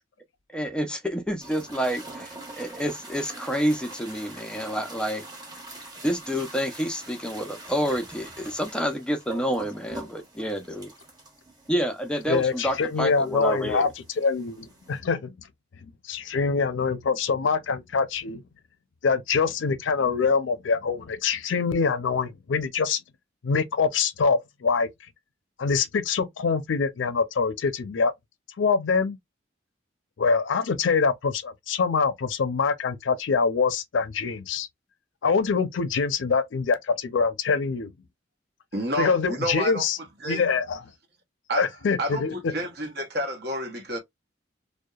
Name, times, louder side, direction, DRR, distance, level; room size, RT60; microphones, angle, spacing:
voice 1, 0.5-5.2 6.0-10.9 11.7-13.9, equal, 5° left, 0.4 m, -28 dB
sound 1, 1.4-15.0, right 2 dB, 20° right, 0.8 m, -44 dB
voice 2, 12.3-13.9 14.2-15.3 15.8-18.4 19.0-23.0 23.4-24.9 25.6-28.1 28.6-29.2 30.2-34.7 35.2-37.9 39.0-40.0 40.3-40.8 41.6-42.3, left 5 dB, 85° left, 0.5 m, -24 dB
voice 3, 38.7-39.8 40.2-40.5 41.5-41.7 42.0-44.0, right 1 dB, 55° right, 0.8 m, -30 dB
2.7 x 2.1 x 2.2 m
head